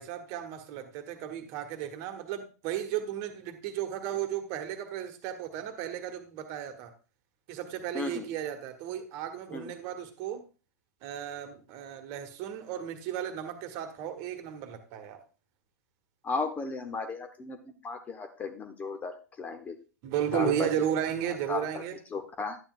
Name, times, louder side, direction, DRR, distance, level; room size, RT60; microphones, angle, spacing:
voice 1, 0.0-6.9 7.5-10.4 11.0-15.2 20.0-22.0, right 10 dB, 35° right, 7 dB, 1.4 m, -34 dB
voice 2, 7.9-8.2 9.5-9.7 16.2-19.8 20.3-20.7 21.5-21.8 22.1-22.6, left 4 dB, 15° left, 7 dB, 0.8 m, -35 dB
11.5 x 9.0 x 2.4 m, 0.34 s
figure-of-eight pair, 105°, 9 cm